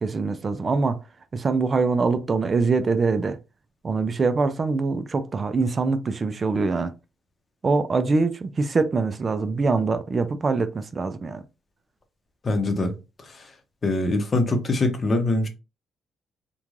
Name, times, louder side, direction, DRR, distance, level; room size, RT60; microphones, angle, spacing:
voice 1, 0.0-1.0 1.3-3.4 3.8-6.9 7.6-11.4, right 4 dB, 35° right, 0.3 m, -23 dB
voice 2, 12.4-12.9 13.2-13.5 13.8-15.5, left 2 dB, 35° left, 0.7 m, -23 dB
3.0 x 2.2 x 2.5 m
cardioid pair, 90°, 0 cm